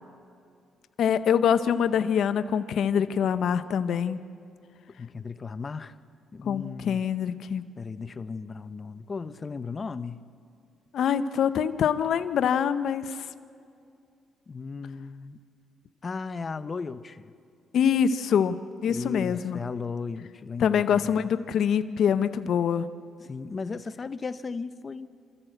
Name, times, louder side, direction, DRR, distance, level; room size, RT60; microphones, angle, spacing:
voice 1, 1.0-4.2 6.5-7.6 10.9-13.3 17.7-18.6 18.8-19.6 20.6-22.9, left 8 dB, 65° left, 0.7 m, -24 dB
voice 2, 5.0-6.0 6.3-7.0 7.8-10.2 14.5-15.4 16.0-17.3 18.9-21.3 23.2-25.1, left 4 dB, 35° left, 0.8 m, -36 dB
27.0 x 14.0 x 8.0 m
cardioid pair, 90°, 0 cm